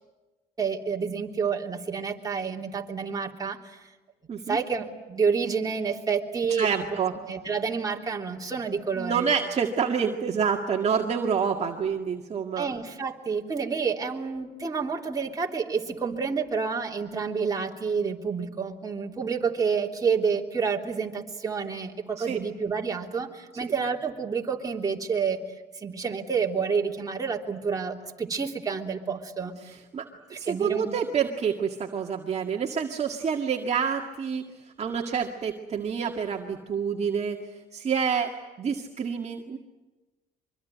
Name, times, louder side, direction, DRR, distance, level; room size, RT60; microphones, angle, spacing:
voice 1, 0.6-3.8 4.5-6.7 7.2-9.3 12.6-25.4 25.8-29.5 30.3-31.0, right 5 dB, 20° right, 0 dB, 3.2 m, -29 dB
voice 2, 6.6-7.1 9.0-12.7 22.2-22.4 29.9-34.4 34.8-37.4 37.7-38.3 38.6-39.6, right 6 dB, 40° right, 1 dB, 2.0 m, -27 dB
24.5 x 24.0 x 9.4 m, 1.1 s
cardioid pair, 110°, 17 cm